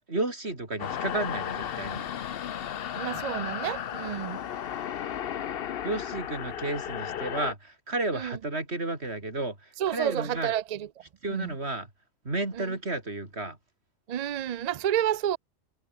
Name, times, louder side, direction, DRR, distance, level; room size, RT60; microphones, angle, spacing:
voice 1, 0.1-2.1 5.8-10.5 11.2-11.9 12.2-13.6, right 2 dB, 55° right, 4.5 m, -32 dB
sound 1, 0.8-7.5, left 9 dB, 55° left, 0.8 m, -34 dB
voice 2, 3.0-4.4 8.1-8.3 9.8-10.9 11.3-11.5 12.6-12.7 14.1-15.4, right 10 dB, 70° right, 0.3 m, -30 dB
omnidirectional pair, 1.3 m